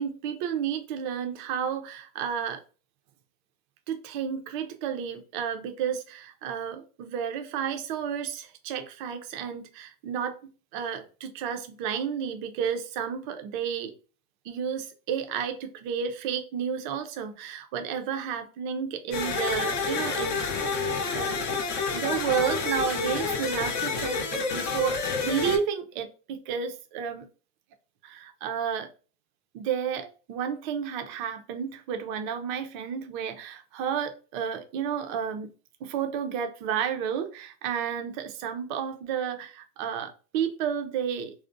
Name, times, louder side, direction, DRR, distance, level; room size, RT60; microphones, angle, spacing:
voice 1, 0.0-2.6 3.9-13.9 14.4-20.4 21.1-21.4 21.9-27.3 28.0-28.9 29.5-35.5 35.8-41.3, right 8 dB, 35° right, 7 dB, 0.4 m, -31 dB
sound 1, 19.1-25.6, left 4 dB, 35° left, 0.5 m, -29 dB
2.5 x 2.1 x 2.5 m, 0.36 s
hypercardioid pair, 115°, 46 cm